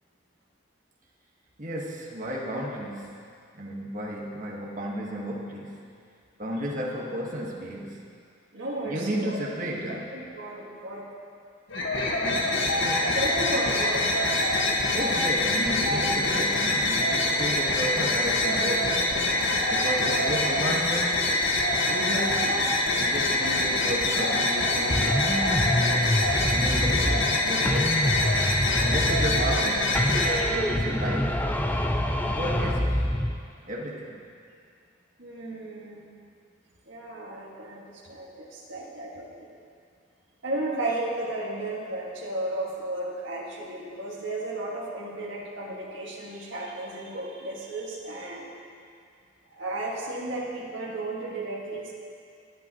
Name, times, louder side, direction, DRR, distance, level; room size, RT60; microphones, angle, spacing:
voice 1, 1.6-3.3 3.5-6.0 6.4-8.1 8.8-10.2 12.2-13.2 14.9-19.1 19.7-21.4 21.9-25.1 25.8-28.1 28.8-30.0 30.5-31.5 32.3-33.1 33.6-34.2, equal, 40° right, -3 dB, 1.6 m, -33 dB
voice 2, 8.5-9.4 10.1-11.1 13.0-14.2 20.0-20.2 32.3-32.7 35.2-36.1 36.9-39.5 40.4-48.5 49.5-51.9, right 1 dB, 75° right, -4 dB, 2.0 m, -34 dB
sound 1, 11.7-30.4, left 2 dB, 80° left, 1.6 m, -25 dB
sound 2, 24.9-27.4 27.6-29.7 29.9-33.4, left 1 dB, 10° left, 0.4 m, -26 dB
19.5 x 8.9 x 3.1 m, 2.3 s
head